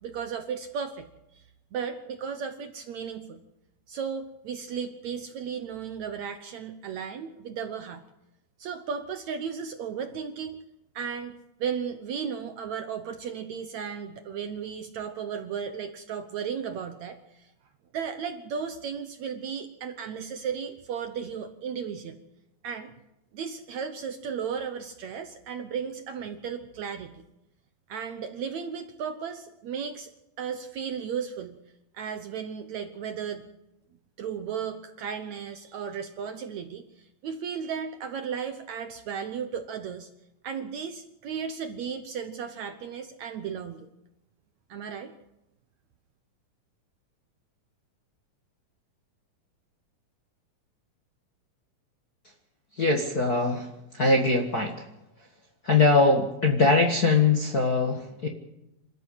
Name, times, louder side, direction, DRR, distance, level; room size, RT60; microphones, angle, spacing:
voice 1, 0.0-1.1 1.3-1.4 1.7-3.4 3.9-8.0 8.6-10.7 11.0-11.3 11.6-17.5 17.9-22.2 22.6-22.9 23.3-27.2 27.9-30.1 30.4-31.6 31.9-33.5 34.2-40.1 40.4-43.9 44.7-45.1, right 7 dB, 65° right, 7 dB, 1.9 m, -35 dB
voice 2, 52.8-53.7 53.9-54.7 55.6-58.3, left 3 dB, 40° left, 0 dB, 1.5 m, -22 dB
27.0 x 13.0 x 8.2 m, 0.93 s
omnidirectional pair, 4.1 m